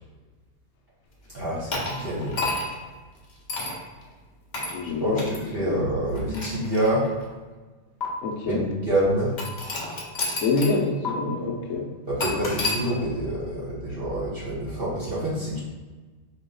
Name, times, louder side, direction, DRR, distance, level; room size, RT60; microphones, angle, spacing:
voice 1, 1.3-2.4 5.0-7.2 8.5-9.3 12.1-15.6, right 1 dB, 40° right, -7 dB, 0.9 m, -27 dB
sound 1, 1.7-2.8 3.5-3.8 4.5-4.8 5.2-5.4 6.1-7.2 8.0-8.1 9.4-10.8 11.0-11.1 12.2-12.8, left 2 dB, 40° left, 0.6 m, -30 dB
voice 2, 4.7-5.2 5.7-5.8 8.2-8.6 10.4-11.9, left 3 dB, 60° left, 0 dB, 1.0 m, -26 dB
4.7 x 3.1 x 3.7 m, 1.3 s
omnidirectional pair, 1.9 m